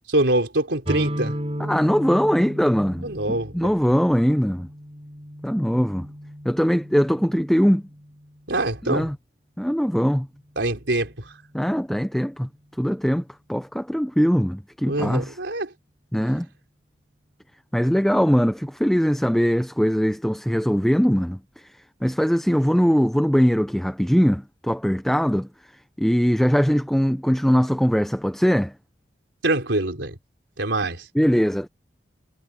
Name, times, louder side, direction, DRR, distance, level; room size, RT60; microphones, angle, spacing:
voice 1, 0.1-1.4 3.0-3.6 8.5-9.1 10.6-11.4 14.9-15.7 29.4-30.2 30.6-31.1, right 2 dB, 85° right, 3.9 m, -24 dB
sound 1, 0.9-8.5, equal, 35° right, 6.5 m, -35 dB
voice 2, 1.6-3.1 3.5-4.7 5.4-6.1 6.4-7.9 8.8-9.1 9.6-10.3 11.5-12.5 12.8-13.2 13.5-15.3 16.1-16.5 17.7-25.5 26.0-28.7 31.2-31.7, equal, ahead, 0.6 m, -21 dB
head